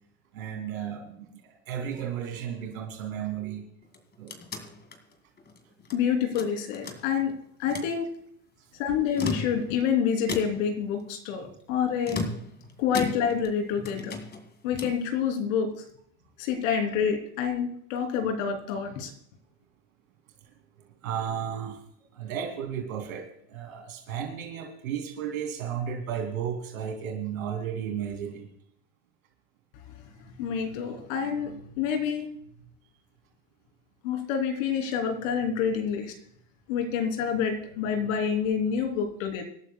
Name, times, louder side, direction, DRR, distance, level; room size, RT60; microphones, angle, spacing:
voice 1, 0.3-3.6 4.2-4.3 8.9-9.0 21.0-21.8 22.1-28.5, right 8 dB, 90° right, 2 dB, 2.8 m, -34 dB
sound 1, 3.8-6.0 6.4-7.3 7.6-8.0 9.0-9.8 10.3-10.8 12.0-13.6 13.8-15.1, left 4 dB, 25° left, 2.3 m, -36 dB
voice 2, 5.9-7.3 7.6-8.1 8.8-12.2 12.8-14.2 14.6-15.7 16.4-19.1 30.4-32.3 34.0-36.1 36.7-39.4, left 7 dB, 70° left, 4 dB, 3.3 m, -27 dB
26.0 x 11.5 x 2.3 m, 0.68 s
supercardioid pair, 105°, 40 cm